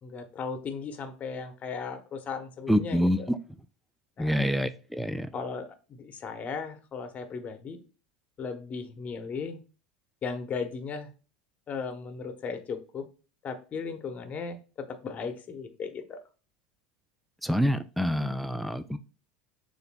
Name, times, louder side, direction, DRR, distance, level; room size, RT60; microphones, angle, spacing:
voice 1, 0.0-3.3 4.2-4.5 5.3-7.8 8.4-9.6 10.2-11.1 11.7-13.1 13.4-16.2, left 5 dB, 35° left, 0.8 m, -36 dB
voice 2, 2.7-3.2 4.2-5.3 17.4-19.0, equal, ahead, 0.3 m, -26 dB
6.6 x 2.6 x 2.2 m
hypercardioid pair, 95°, 4 cm